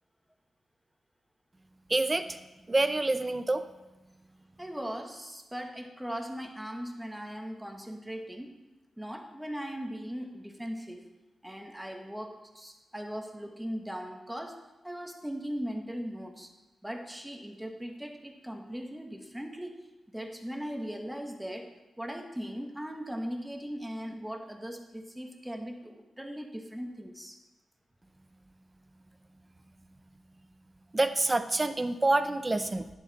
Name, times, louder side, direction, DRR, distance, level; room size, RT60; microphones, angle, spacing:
voice 1, 1.9-2.3 2.7-3.6 30.9-32.9, right 2 dB, 20° right, 10 dB, 0.6 m, -27 dB
voice 2, 4.6-8.5 9.0-11.1 11.4-14.6 14.8-16.5 16.8-19.8 20.1-27.4, equal, 5° right, 3 dB, 1.2 m, -39 dB
10.5 x 7.0 x 4.1 m, 1.1 s
cardioid pair, 100°, 0 cm